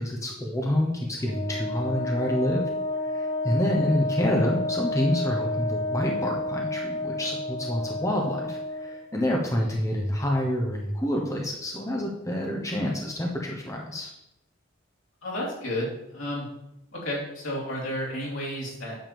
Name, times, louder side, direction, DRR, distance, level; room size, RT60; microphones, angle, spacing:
voice 1, 0.0-2.7 3.0-14.1, left 1 dB, 15° left, 0 dB, 0.9 m, -27 dB
Wind instrument woodwind instrument, 1.2-9.0, left 2 dB, 35° right, 1.5 m, -30 dB
voice 2, 15.2-16.5 16.9-19.0, left 1 dB, 80° left, -4 dB, 3.4 m, -32 dB
9.1 x 3.6 x 6.8 m, 0.85 s
head